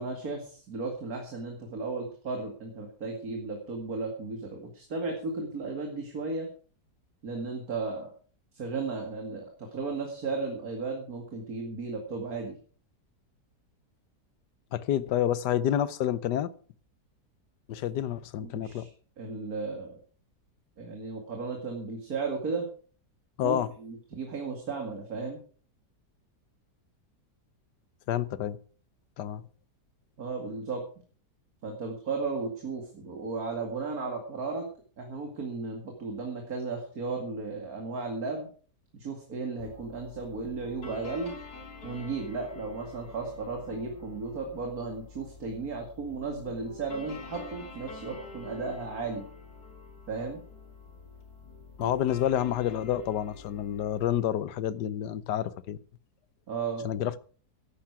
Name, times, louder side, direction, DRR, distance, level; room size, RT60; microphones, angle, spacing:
voice 1, 0.0-6.5 7.2-8.1 8.5-12.6 18.5-18.9 19.2-20.0 20.8-22.7 23.4-25.4 30.2-30.8 31.6-34.7 35.0-38.5 39.0-41.3 41.8-49.3 50.1-50.4 56.5-56.9, right 4 dB, 60° right, 2.7 m, -35 dB
voice 2, 14.7-16.5 17.7-18.9 23.4-23.7 28.1-28.6 29.2-29.4 51.8-55.8 56.8-57.2, left 11 dB, 85° left, 1.4 m, -29 dB
sound 1, 39.6-54.2, left 3 dB, 70° left, 3.0 m, -46 dB
15.0 x 11.5 x 4.8 m
omnidirectional pair, 1.8 m